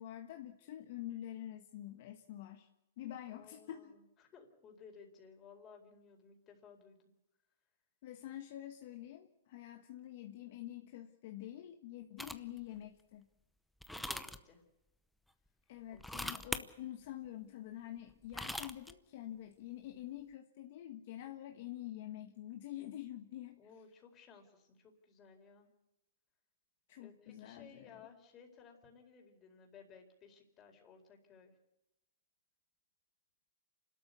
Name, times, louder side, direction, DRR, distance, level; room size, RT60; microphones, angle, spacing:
voice 1, 0.0-2.7 3.0-3.9 8.0-13.3 15.7-23.6 26.9-28.0, left 13 dB, 50° left, 5 dB, 1.5 m, -47 dB
voice 2, 3.3-7.0 13.9-14.6 15.9-16.0 23.6-25.7 27.0-31.6, left 6 dB, 20° left, 3 dB, 4.4 m, -58 dB
sound 1, 12.2-12.6 13.8-14.4 15.9-16.6 18.1-18.9, left 1 dB, ahead, 0.8 m, -41 dB
28.0 x 13.0 x 8.3 m, 0.92 s
hypercardioid pair, 150°, 0 cm